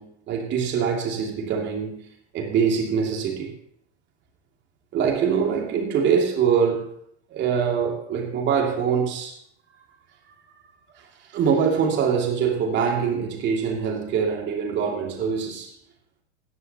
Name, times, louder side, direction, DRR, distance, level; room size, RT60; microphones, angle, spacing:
voice 1, 0.0-2.0 2.3-3.5 4.9-6.8 7.3-9.4 11.3-15.7, right 6 dB, 35° right, 2.7 m, -24 dB
17.5 x 11.0 x 3.0 m
hypercardioid pair, 100°, 34 cm